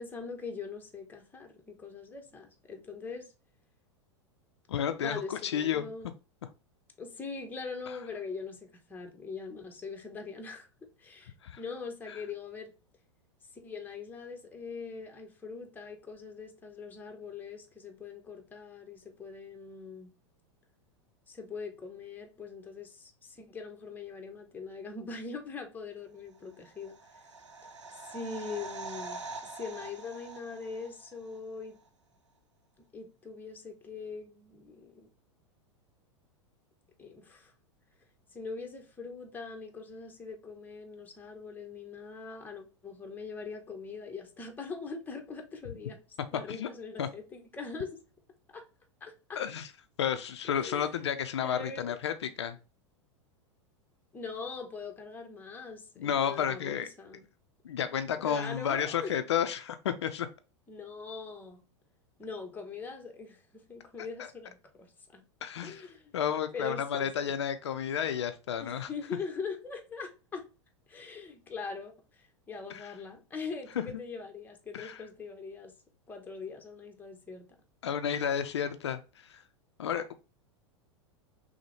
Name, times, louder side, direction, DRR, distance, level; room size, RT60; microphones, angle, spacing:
voice 1, 0.0-3.3 5.0-6.1 7.0-8.6 8.9-10.7 11.0-12.7 13.5-20.1 21.3-27.0 28.1-29.2 29.5-31.8 32.9-35.1 37.0-37.5 38.3-46.0 46.3-48.0 48.5-48.6 49.0-49.4 50.4-51.1 51.4-52.0 54.1-57.2 58.2-59.2 60.7-61.6 62.2-65.2 65.6-66.1 66.5-67.3 68.6-70.5 70.9-75.7 76.1-77.5, left 4 dB, 10° left, 0.8 m, -42 dB
voice 2, 4.7-5.9 11.4-11.6 12.1-12.2 46.5-46.7 47.0-47.1 49.4-49.7 50.0-52.6 56.0-56.9 57.6-60.3 64.2-64.3 65.4-65.9 66.1-68.9 72.7-72.9 74.7-75.0 77.8-79.4 79.8-80.1, left 8 dB, 65° left, 0.4 m, -32 dB
sound 1, 26.5-31.4 31.7-31.8, right 3 dB, 75° right, 0.6 m, -44 dB
5.9 x 2.1 x 3.1 m
figure-of-eight pair, 90°, 16 cm